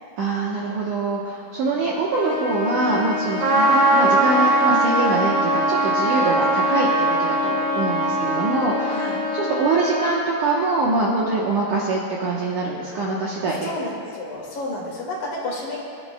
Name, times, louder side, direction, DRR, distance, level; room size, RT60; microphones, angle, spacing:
voice 1, 0.2-13.7, right 2 dB, 70° right, -4 dB, 2.0 m, -24 dB
Trumpet, 2.1-10.3, left 2 dB, 85° left, 1.1 m, -28 dB
Trumpet 2, 3.4-9.6, right 2 dB, 50° right, 2.7 m, -21 dB
voice 2, 8.9-9.2 11.2-11.3 13.6-15.8, left 2 dB, 60° left, -3 dB, 3.2 m, -31 dB
23.5 x 11.5 x 2.2 m, 2.6 s
omnidirectional pair, 4.8 m